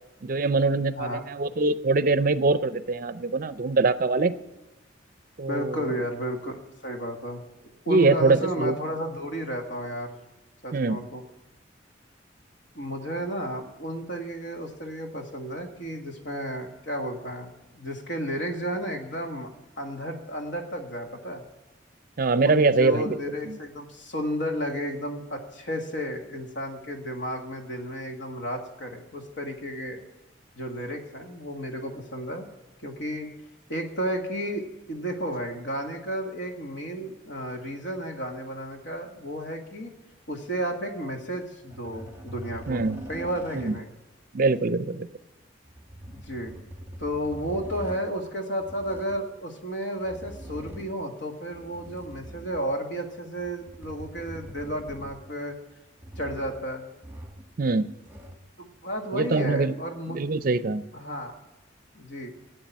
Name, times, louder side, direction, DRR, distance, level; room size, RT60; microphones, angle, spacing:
voice 1, 0.2-4.3 5.4-5.9 7.9-8.8 10.7-11.0 22.2-23.2 23.5-23.6 42.7-43.0 43.5-43.7 44.3-45.1 57.6-57.9 59.1-59.7 60.1-60.8, right 3 dB, 45° right, 15 dB, 0.5 m, -23 dB
voice 2, 5.5-7.4 7.9-10.2 10.6-11.2 12.7-19.5 19.8-21.4 22.4-30.0 30.6-32.5 32.8-33.3 33.7-39.9 40.3-43.9 46.1-46.5 47.0-55.6 56.2-56.8 58.6-60.2 60.9-61.4 61.9-62.3, equal, 65° left, 4 dB, 1.9 m, -33 dB
sound 1, 41.7-44.0 45.6-48.1 48.6-49.3 50.0-51.0 51.5-52.8 53.4-55.4 56.0-56.7 57.0-57.6 57.8-58.5 59.4-59.5, right 1 dB, 10° right, 1.2 m, -43 dB
11.5 x 7.8 x 9.2 m, 1.1 s
head